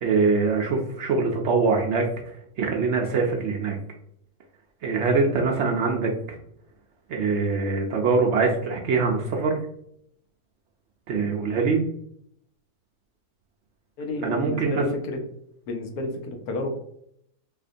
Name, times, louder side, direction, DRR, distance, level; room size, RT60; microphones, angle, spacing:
voice 1, 0.0-2.1 2.6-3.8 4.8-6.4 7.1-9.6 11.1-11.8 14.2-14.8, right 4 dB, 65° right, 1 dB, 0.7 m, -23 dB
voice 2, 14.0-15.2 15.7-16.7, left 2 dB, 90° left, 4 dB, 1.2 m, -31 dB
4.1 x 2.8 x 2.5 m, 0.71 s
omnidirectional pair, 1.5 m